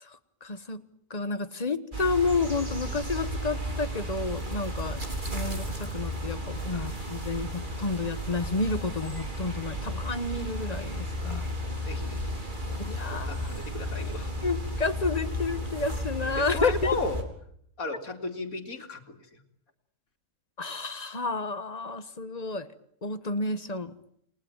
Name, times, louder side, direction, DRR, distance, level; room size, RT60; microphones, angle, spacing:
voice 1, 0.4-0.8 1.1-5.0 5.3-11.5 12.8-13.5 14.4-16.9 20.6-22.7 23.0-23.9, left 3 dB, 30° left, 11 dB, 1.5 m, -30 dB
sound 1, 1.9-17.2, equal, 35° right, 3.9 m, -34 dB
voice 2, 11.2-12.4 12.6-12.8 13.1-14.3 16.4-17.2 17.8-19.0, left 3 dB, 75° left, 5 dB, 3.0 m, -35 dB
30.0 x 20.0 x 9.1 m, 0.71 s
omnidirectional pair, 1.5 m